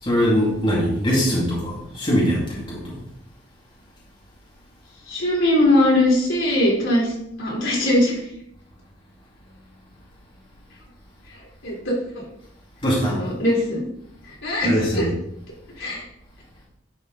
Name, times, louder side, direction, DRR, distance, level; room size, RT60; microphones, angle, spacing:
voice 1, 0.0-3.0 12.8-13.2 14.6-15.1, equal, 25° left, -6 dB, 2.5 m, -22 dB
voice 2, 5.1-7.1 7.4-8.2 11.3-12.2 13.0-13.8 14.4-15.1 15.8-16.0, left 1 dB, 75° left, -4 dB, 3.7 m, -21 dB
11.0 x 5.2 x 4.0 m, 0.76 s
head